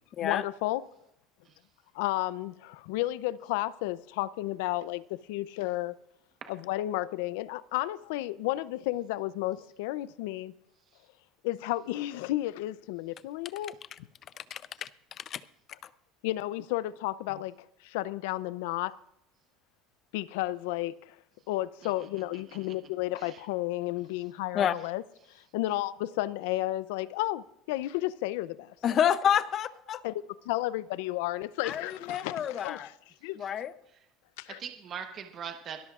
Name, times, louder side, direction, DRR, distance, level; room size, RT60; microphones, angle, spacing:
voice 1, 0.2-0.8 1.9-5.9 6.5-10.5 11.4-13.7 16.2-17.5 17.8-18.9 20.1-21.2 21.5-25.0 25.3-28.7 30.0-30.1 30.5-32.9 33.2-33.4 34.4-34.6, left 16 dB, 90° left, 0.5 m, -32 dB
voice 2, 14.4-15.4 15.8-15.9 24.5-24.7 28.8-30.0 31.6-32.9 33.4-33.7, left 9 dB, 30° left, 0.5 m, -29 dB
voice 3, 22.3-22.8 23.2-23.4 33.4-33.5 34.5-35.8, right 7 dB, 30° right, 1.0 m, -42 dB
23.5 x 13.0 x 2.4 m
cardioid pair, 170°, 0 cm